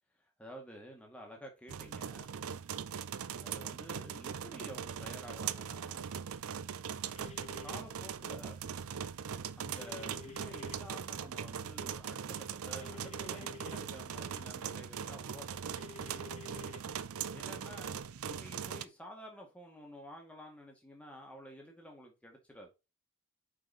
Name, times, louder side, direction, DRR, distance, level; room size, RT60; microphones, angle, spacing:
voice 1, 0.2-2.3 3.3-6.0 7.6-8.6 9.2-16.2 17.3-22.7, equal, 5° left, 1.9 m, -51 dB
sound 1, 1.7-18.8, right 7 dB, 75° right, 0.5 m, -40 dB
sound 2, 7.1-7.8 9.8-10.8 12.8-13.8 15.8-16.8, left 7 dB, 30° left, 1.0 m, -51 dB
5.8 x 5.4 x 4.3 m
head